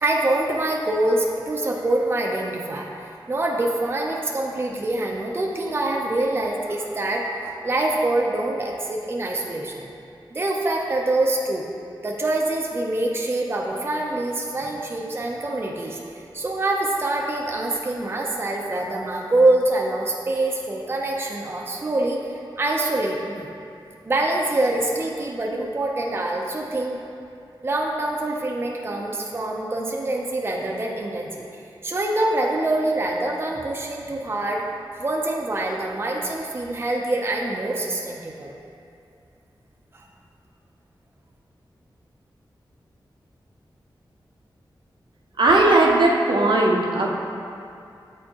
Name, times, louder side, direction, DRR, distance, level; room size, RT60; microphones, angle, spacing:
voice 1, 0.0-9.9 10.3-11.7 12.0-23.5 24.0-27.0 27.6-34.6 35.0-38.5 39.9-40.1, right 2 dB, 30° right, -1 dB, 0.5 m, -25 dB
voice 2, 45.4-47.1, right 2 dB, 70° right, -1 dB, 0.7 m, -18 dB
8.1 x 4.4 x 2.8 m, 2.5 s
wide cardioid pair, 105°, 8 cm